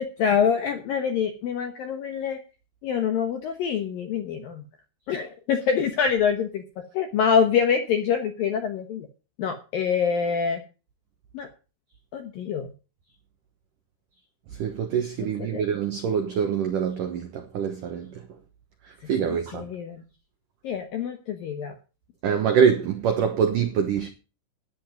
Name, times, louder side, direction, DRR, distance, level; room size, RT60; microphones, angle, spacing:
voice 1, 0.0-2.4 2.8-4.6 5.1-6.6 6.9-9.1 9.4-10.6 11.3-11.5 12.1-12.7 15.5-15.6 19.5-20.0 20.6-21.8, left 7 dB, 75° left, 2.1 m, -25 dB
voice 2, 14.5-18.3 18.8-19.7 22.2-24.1, right 7 dB, 80° right, 1.9 m, -25 dB
13.0 x 10.0 x 5.2 m
omnidirectional pair, 5.8 m